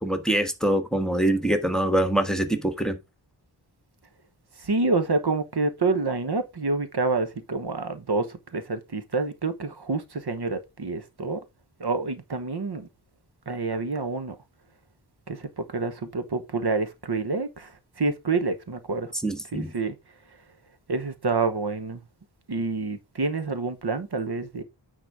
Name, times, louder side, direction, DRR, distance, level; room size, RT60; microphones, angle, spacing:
voice 1, 0.0-3.0 19.2-19.7, right 1 dB, ahead, 1.3 m, -24 dB
voice 2, 4.6-11.4 11.8-12.9 13.5-14.4 15.3-19.1 19.5-19.9 20.3-20.4 20.9-22.0 22.5-24.6, right 3 dB, 60° right, 1.2 m, -28 dB
9.1 x 4.1 x 4.8 m
wide cardioid pair, 75°, 44 cm